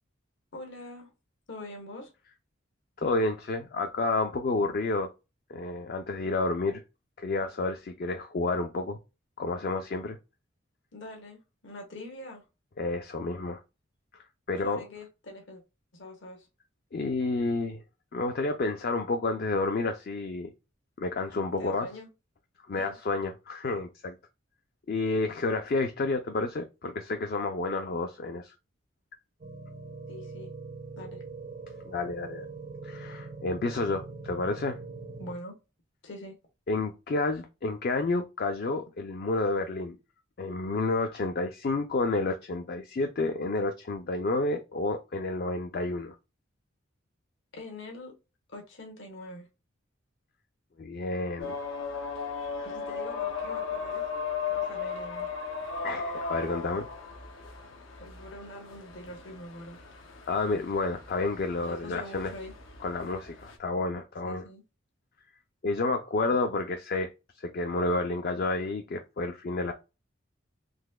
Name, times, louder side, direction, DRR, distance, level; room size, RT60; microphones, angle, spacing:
voice 1, 0.5-1.1 1.5-2.1 10.9-12.4 14.6-15.6 15.9-16.5 21.6-22.1 22.8-22.9 30.1-30.5 31.0-31.2 35.2-35.5 36.0-36.4 47.5-48.1 48.5-49.5 52.6-55.3 57.9-59.8 61.6-62.5 64.2-64.6, left 1 dB, 65° left, 1.0 m, -44 dB
voice 2, 3.0-5.1 5.5-6.8 7.2-9.0 9.4-10.2 12.8-13.6 14.5-14.8 16.9-17.8 18.1-20.5 21.0-21.9 22.7-24.2 24.9-28.5 31.9-32.5 32.8-34.8 36.7-40.0 40.4-46.2 50.8-51.6 55.8-56.9 60.3-62.3 62.8-64.5 65.6-69.7, left 3 dB, 50° left, 0.4 m, -30 dB
sound 1, 29.4-35.4, right 3 dB, 40° right, 0.4 m, -42 dB
sound 2, 51.4-63.6, left 5 dB, 85° left, 0.7 m, -37 dB
4.0 x 2.8 x 2.2 m
head